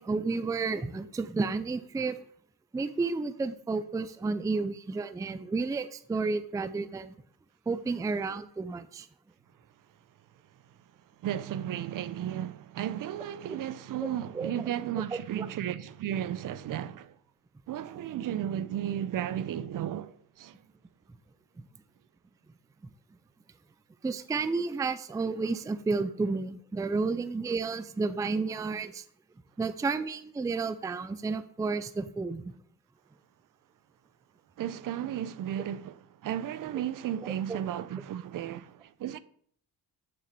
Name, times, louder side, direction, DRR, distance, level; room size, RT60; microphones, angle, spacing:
voice 1, 0.0-2.2 2.7-7.1 7.7-9.1 14.3-14.5 15.1-15.5 24.0-29.0 29.6-32.4 37.2-37.6, right 4 dB, 10° right, 0.4 m, -31 dB
voice 2, 11.2-17.1 17.7-20.6 34.6-39.2, right 10 dB, 55° right, 0.6 m, -34 dB
6.8 x 6.2 x 7.4 m
cardioid pair, 135°, 38 cm